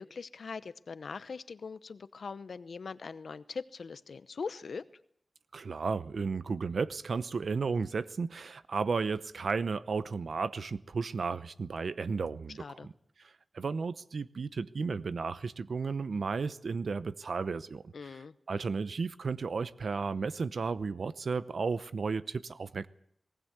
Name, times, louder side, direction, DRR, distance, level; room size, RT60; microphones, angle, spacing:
voice 1, 0.0-4.8 12.6-12.9 17.9-18.3, left 5 dB, 85° left, 0.8 m, -41 dB
voice 2, 5.5-12.9 13.2-18.1 18.5-22.9, right 4 dB, 80° right, 0.8 m, -34 dB
19.5 x 18.5 x 8.1 m
wide cardioid pair, 100°, 0 cm